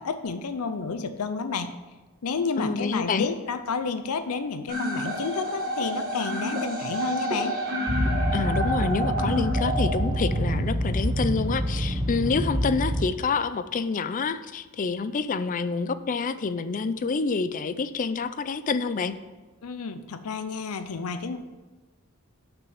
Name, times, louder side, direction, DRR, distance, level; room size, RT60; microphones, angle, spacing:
voice 1, 0.0-1.7 2.2-7.6 19.6-21.4, left 4 dB, 90° left, 10 dB, 0.6 m, -30 dB
voice 2, 2.6-3.3 8.3-19.1, left 4 dB, 35° left, 13 dB, 0.4 m, -27 dB
sound 1, 4.7-10.7, equal, 40° right, 1.7 m, -30 dB
sound 2, 7.9-13.0, equal, 20° right, 0.8 m, -26 dB
6.4 x 6.1 x 7.1 m, 1.2 s
head